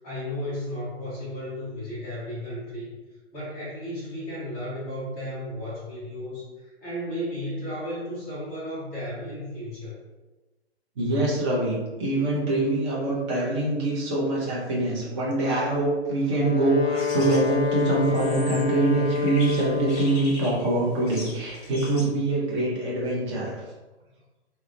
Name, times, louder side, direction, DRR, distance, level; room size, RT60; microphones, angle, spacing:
voice 1, 0.0-2.9 3.3-10.0, equal, 5° left, -10 dB, 0.3 m, -34 dB
voice 2, 11.0-23.5, right 2 dB, 25° right, -5 dB, 0.6 m, -24 dB
Wind instrument woodwind instrument, 16.2-20.4, left 6 dB, 75° left, 0.5 m, -28 dB
sound 1, 16.9-22.0, left 2 dB, 25° left, 0.7 m, -42 dB
2.2 x 2.1 x 3.0 m, 1.1 s
figure-of-eight pair, 120°, 33 cm